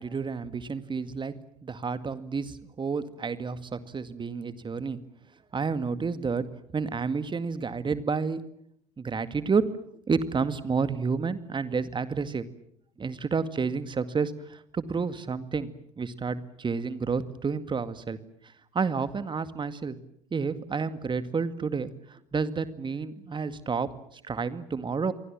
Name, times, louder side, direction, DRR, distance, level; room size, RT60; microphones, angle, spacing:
voice 1, 0.0-1.3 1.6-5.0 5.5-6.5 6.7-8.4 9.0-9.7 10.1-12.4 13.0-15.7 16.0-18.2 18.4-20.0 20.3-25.1, right 5 dB, 25° right, 12 dB, 2.1 m, -30 dB
29.0 x 23.5 x 7.6 m, 0.70 s
figure-of-eight pair, 65°, 21 cm